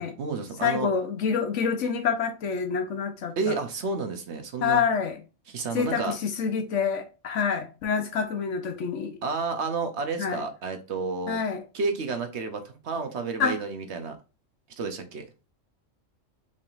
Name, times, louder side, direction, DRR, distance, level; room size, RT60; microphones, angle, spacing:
voice 1, 0.0-0.9 3.4-4.9 5.5-6.2 9.2-11.4 11.7-14.2 14.8-15.2, right 4 dB, 60° right, 1.1 m, -31 dB
voice 2, 0.6-3.6 4.6-5.2 5.7-9.2 10.2-10.4 11.3-11.6 13.4-13.6, left 6 dB, 70° left, 1.1 m, -27 dB
5.4 x 3.5 x 2.5 m
omnidirectional pair, 1.3 m